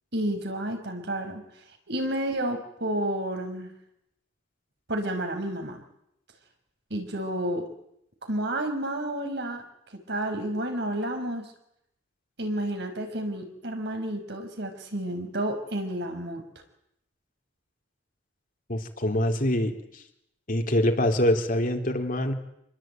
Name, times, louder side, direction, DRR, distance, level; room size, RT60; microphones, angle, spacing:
voice 1, 0.1-1.4 1.9-3.7 4.9-5.8 6.9-7.7 8.2-9.6 10.1-11.5 12.4-16.4, right 1 dB, 60° right, 5 dB, 5.5 m, -30 dB
voice 2, 18.7-20.0 20.5-22.3, left 1 dB, 45° left, 4 dB, 3.6 m, -25 dB
27.5 x 21.5 x 9.2 m, 0.77 s
head